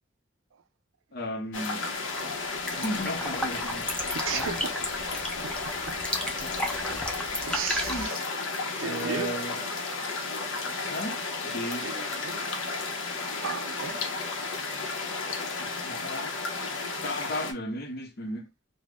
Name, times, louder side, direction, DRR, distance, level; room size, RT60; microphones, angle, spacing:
voice 1, 1.1-1.8 2.7-4.1 4.3-4.6 5.4-5.5 6.2-6.6 7.9-8.1 8.8-9.6 10.8-11.9 15.6-16.4 17.0-18.5, left 1 dB, 55° left, 0.7 m, -35 dB
sound 1, 1.5-17.5, left 3 dB, 90° left, 0.7 m, -33 dB
sound 2, 2.0-2.1 2.4-8.1, left 1 dB, 5° left, 0.4 m, -34 dB
voice 2, 4.1-4.8 5.4-5.5 5.9-6.0 7.4-8.3 8.8-9.3 11.8-12.4 13.4-14.1, right 7 dB, 85° right, 0.4 m, -35 dB
2.4 x 2.1 x 3.3 m
head